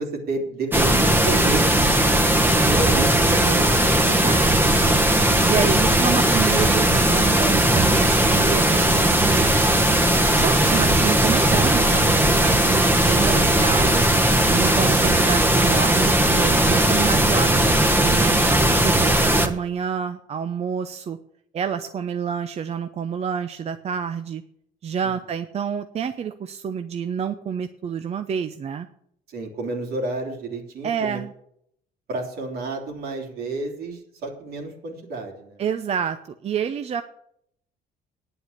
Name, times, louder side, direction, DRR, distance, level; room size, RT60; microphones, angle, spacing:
voice 1, 0.0-1.7 2.4-3.8 29.3-31.2 32.1-35.6, right 2 dB, 70° right, 2 dB, 3.1 m, -30 dB
sound 1, 0.7-19.5, right 1 dB, 10° right, 1.3 m, -18 dB
voice 2, 4.1-4.8 5.4-9.5 10.3-14.0 14.5-18.4 18.8-21.2 21.5-24.4 24.8-28.9 30.8-31.3 35.6-36.2 36.4-37.0, right 7 dB, 40° right, 9 dB, 0.6 m, -28 dB
9.9 x 7.8 x 8.4 m, 0.73 s
cardioid pair, 110°, 17 cm